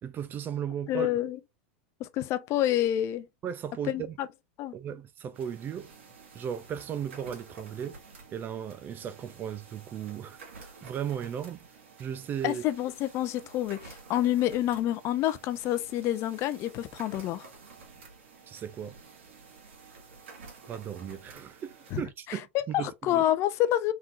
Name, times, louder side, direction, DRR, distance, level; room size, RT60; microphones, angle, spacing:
voice 1, 0.0-1.1 3.4-4.2 4.7-5.9 6.3-8.0 8.3-11.7 12.0-12.6 18.5-19.0 20.7-23.2, right 9 dB, 30° right, 0.5 m, -36 dB
voice 2, 0.9-1.4 2.0-3.3 3.9-4.3 4.6-4.7 12.4-17.5 21.9-22.0 22.3-23.9, left 13 dB, 45° left, 0.6 m, -28 dB
sound 1, 5.3-22.0, right 4 dB, 85° right, 2.0 m, -51 dB
4.4 x 3.7 x 2.5 m
hypercardioid pair, 110°, 6 cm